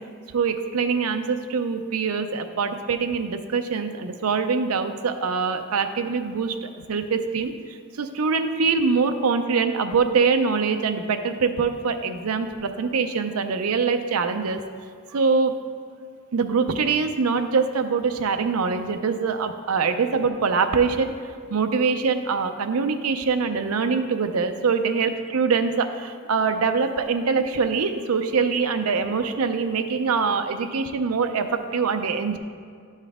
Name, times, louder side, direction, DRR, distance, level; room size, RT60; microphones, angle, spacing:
voice 1, 0.3-7.5 7.9-14.6 15.1-15.6 16.3-21.1 21.5-32.4, right 5 dB, 90° right, 8 dB, 0.5 m, -24 dB
11.0 x 5.6 x 3.5 m, 2.2 s
head